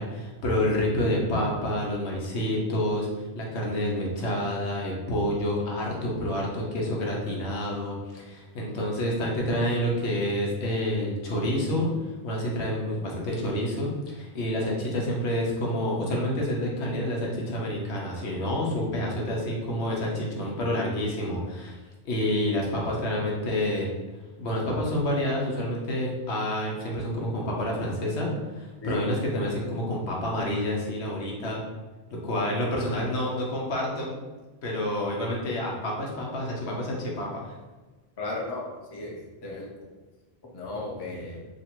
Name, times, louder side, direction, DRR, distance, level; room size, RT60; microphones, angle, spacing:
voice 1, 0.0-3.1 3.3-11.9 12.2-21.8 22.0-23.9 24.4-31.6 32.1-34.1 34.6-37.5, left 1 dB, 90° left, -2 dB, 1.1 m, -28 dB
voice 2, 38.2-39.9 40.5-41.5, left 2 dB, 30° left, -1 dB, 0.5 m, -35 dB
2.9 x 2.5 x 4.4 m, 1.2 s
omnidirectional pair, 1.1 m